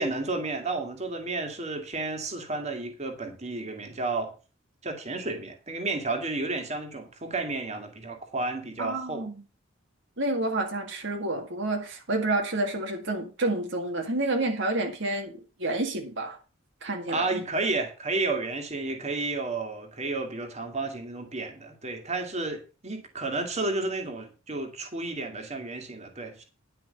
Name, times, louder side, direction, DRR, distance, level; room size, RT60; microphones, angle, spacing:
voice 1, 0.0-4.3 4.8-9.2 17.1-26.4, right 3 dB, 35° right, 2.2 m, -32 dB
voice 2, 8.8-9.3 10.2-15.3 15.6-16.4 16.8-17.4, right 2 dB, 60° right, 1.9 m, -29 dB
10.5 x 5.9 x 6.6 m
head